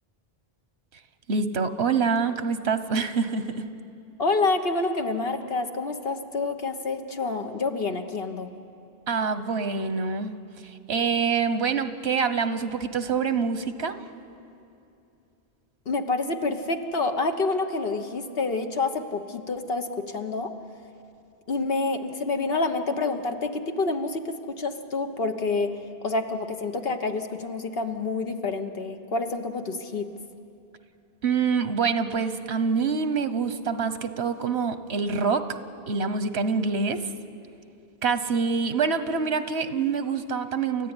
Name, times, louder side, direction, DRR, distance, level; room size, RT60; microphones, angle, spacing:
voice 1, 1.3-3.7 9.1-10.3 10.9-14.0 31.2-35.5 35.9-37.0 38.0-40.9, right 5 dB, 85° right, 11 dB, 1.3 m, -26 dB
voice 2, 4.2-8.5 15.9-20.5 21.5-25.7 26.0-30.1, left 3 dB, 65° left, 6 dB, 1.4 m, -28 dB
29.5 x 14.0 x 9.8 m, 2.7 s
omnidirectional pair, 1.0 m